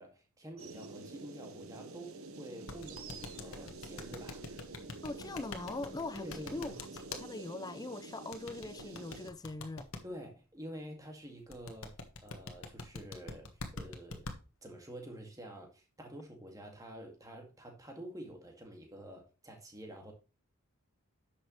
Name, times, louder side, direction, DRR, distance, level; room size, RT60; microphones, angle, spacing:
voice 1, 0.0-4.4 6.1-6.8 10.0-14.3 14.6-20.1, right 1 dB, 15° right, 2.1 m, -48 dB
sound 1, 0.6-9.3, right 3 dB, 70° right, 1.2 m, -48 dB
sound 2, 2.7-7.2 8.3-10.0 11.5-14.4, left 3 dB, 65° left, 1.4 m, -43 dB
voice 2, 5.0-6.8 7.1-9.9, left 2 dB, 15° left, 0.4 m, -41 dB
10.5 x 6.6 x 3.2 m
head